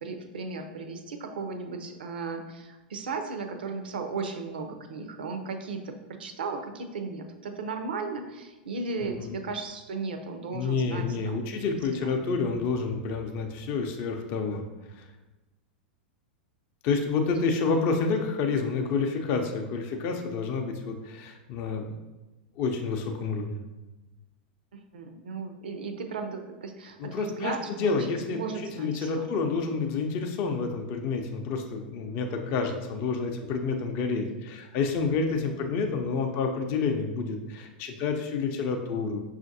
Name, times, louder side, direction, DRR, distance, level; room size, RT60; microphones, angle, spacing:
voice 1, 0.0-11.5 12.0-12.2 24.7-28.0 28.3-29.3, right 4 dB, 75° right, 6 dB, 0.5 m, -36 dB
voice 2, 10.5-14.6 14.9-15.1 16.8-21.9 22.6-23.6 27.0-39.2, left 4 dB, 45° left, 3 dB, 0.5 m, -29 dB
5.6 x 2.4 x 2.6 m, 1.1 s
hypercardioid pair, 100°, 5 cm